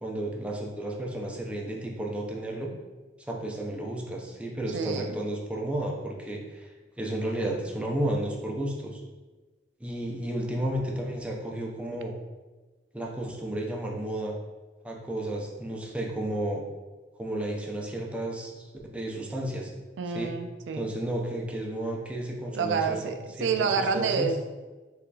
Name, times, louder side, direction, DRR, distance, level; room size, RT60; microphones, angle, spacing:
voice 1, 0.0-2.7 3.3-6.7 7.0-9.0 9.8-12.1 12.9-14.3 14.8-16.6 17.2-19.7 20.1-20.3 20.7-24.3, right 1 dB, 5° right, -1 dB, 0.4 m, -32 dB
voice 2, 4.7-5.1 20.0-20.9 22.5-24.4, right 5 dB, 80° right, 7 dB, 0.3 m, -28 dB
3.7 x 3.2 x 2.3 m, 1.2 s
head